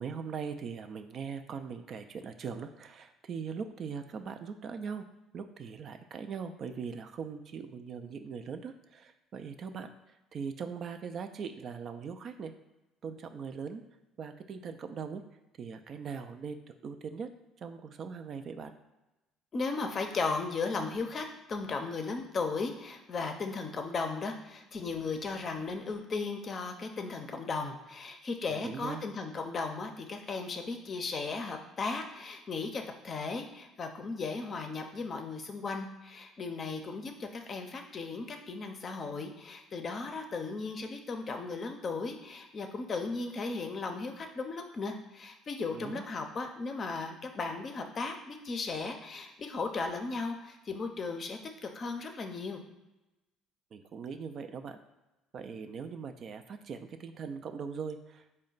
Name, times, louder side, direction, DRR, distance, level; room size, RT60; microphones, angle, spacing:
voice 1, 0.0-5.0 5.3-9.9 10.3-12.5 13.0-13.8 14.2-15.2 15.6-17.3 17.6-18.7 28.5-29.0 45.7-46.1 53.7-54.8 55.3-58.4, right 6 dB, 50° right, 8 dB, 0.3 m, -40 dB
voice 2, 19.5-52.6, left 4 dB, 40° left, 5 dB, 0.5 m, -36 dB
4.2 x 2.2 x 3.9 m, 1.0 s
supercardioid pair, 90°, 0 cm